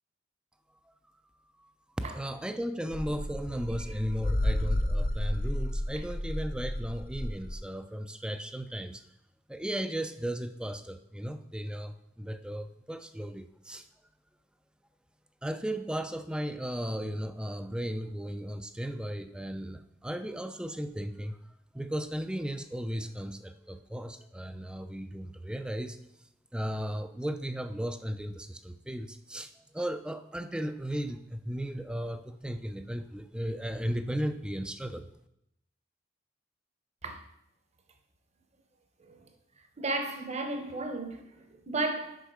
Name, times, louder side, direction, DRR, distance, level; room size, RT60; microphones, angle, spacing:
voice 1, 2.1-9.0 9.5-13.8 15.4-21.4 21.7-26.0 26.5-29.5 29.7-35.1, equal, 5° right, 0.3 m, -35 dB
sound 1, 2.9-7.6, left 1 dB, 55° left, 0.6 m, -31 dB
voice 2, 39.8-42.2, right 2 dB, 35° right, 0.9 m, -33 dB
6.4 x 5.5 x 4.8 m
head